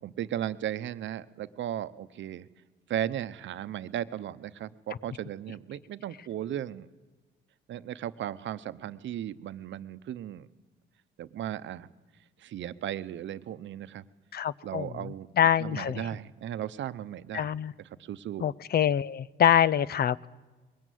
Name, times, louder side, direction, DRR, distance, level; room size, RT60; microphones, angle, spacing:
voice 1, 0.0-2.5 2.9-6.9 7.7-10.5 11.2-11.9 12.4-14.0 14.6-15.3 15.6-18.5, right 11 dB, 70° right, 13 dB, 0.8 m, -36 dB
voice 2, 14.3-15.0 15.4-16.1 17.3-17.7 18.4-20.3, left 9 dB, 50° left, 18 dB, 0.6 m, -25 dB
21.0 x 17.0 x 9.4 m, 1.3 s
cardioid pair, 90°, 20 cm